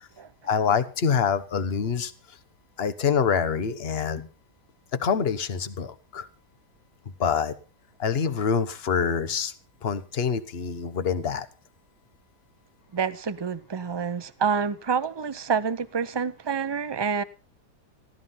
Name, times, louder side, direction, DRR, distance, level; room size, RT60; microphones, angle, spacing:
voice 1, 0.4-2.1 2.8-4.3 4.9-6.3 7.2-7.5 8.0-9.5 9.8-11.5, left 6 dB, 40° left, 1.2 m, -26 dB
voice 2, 12.9-17.2, right 6 dB, 35° right, 0.4 m, -28 dB
15.0 x 13.0 x 5.6 m
omnidirectional pair, 1.7 m